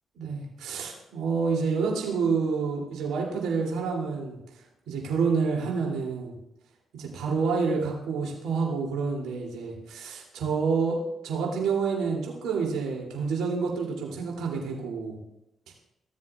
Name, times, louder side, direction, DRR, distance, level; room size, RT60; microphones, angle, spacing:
voice 1, 0.1-4.4 4.9-6.3 6.9-11.0 11.2-15.2, right 5 dB, 70° right, -2 dB, 2.8 m, -28 dB
16.0 x 7.4 x 2.4 m, 0.84 s
hypercardioid pair, 45°, 0 cm